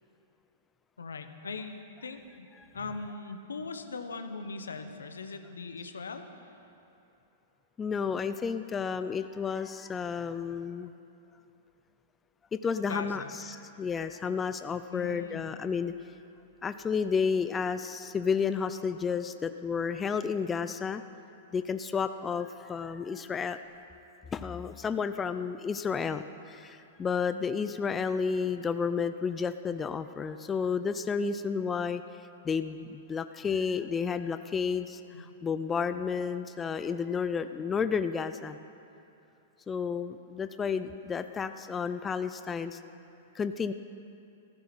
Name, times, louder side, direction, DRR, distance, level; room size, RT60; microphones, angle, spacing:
voice 1, 1.0-2.5 2.7-6.5 12.8-13.3 14.9-15.4 35.1-35.3, left 4 dB, 85° left, 7 dB, 1.2 m, -40 dB
voice 2, 7.8-10.9 12.5-15.9 16.6-21.0 21.5-23.6 24.3-32.0 32.4-38.6 39.7-42.8 43.3-43.7, left 6 dB, 20° left, 11 dB, 0.5 m, -31 dB
14.5 x 14.0 x 6.2 m, 2.7 s
hypercardioid pair, 110°, 0 cm